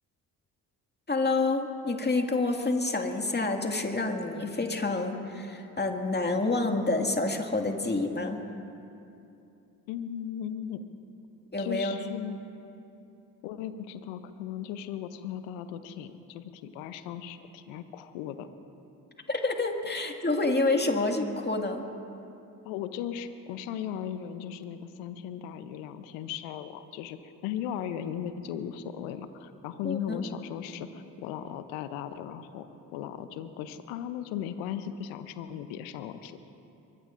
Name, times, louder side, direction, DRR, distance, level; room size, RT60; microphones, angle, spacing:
voice 1, 1.1-8.4 11.5-11.9 19.3-21.8 29.8-30.2, left 3 dB, 20° left, 3 dB, 2.1 m, -28 dB
voice 2, 9.9-10.8 11.6-12.4 13.4-18.5 19.9-20.0 22.6-32.7 32.9-36.4, left 9 dB, 75° left, 11 dB, 0.8 m, -37 dB
23.5 x 19.5 x 2.6 m, 2.7 s
hypercardioid pair, 45°, 48 cm